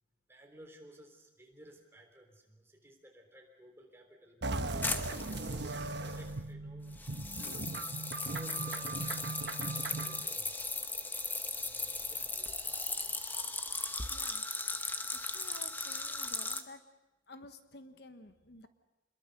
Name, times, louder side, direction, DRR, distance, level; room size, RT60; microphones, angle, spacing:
voice 1, 0.3-5.7 6.0-7.0 7.4-7.9 8.3-9.3 10.0-10.7 11.5-13.2, right 1 dB, 15° right, 2 dB, 3.7 m, -57 dB
sound 1, 4.4-10.2, right 3 dB, 65° right, 1.2 m, -38 dB
sound 2, 4.8-6.4 7.0-16.6, left 3 dB, 10° left, 1.0 m, -38 dB
voice 2, 14.1-14.4 15.2-16.8 17.3-18.7, left 2 dB, 60° left, 9 dB, 1.1 m, -52 dB
28.0 x 21.5 x 6.7 m, 1.0 s
head